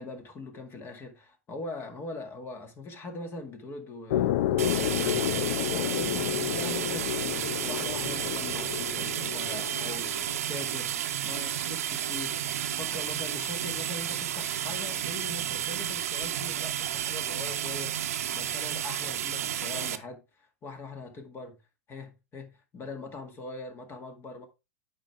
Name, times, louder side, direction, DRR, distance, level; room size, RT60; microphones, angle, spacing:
voice 1, 0.0-5.4 5.7-10.1 10.5-21.6 21.9-24.5, left 2 dB, 30° left, 1.9 m, -42 dB
sound 1, 4.1-10.4, left 12 dB, 60° left, 0.5 m, -30 dB
sound 2, 4.6-20.0, right 10 dB, 75° right, 0.8 m, -32 dB
8.8 x 5.0 x 3.4 m
hypercardioid pair, 110°, 8 cm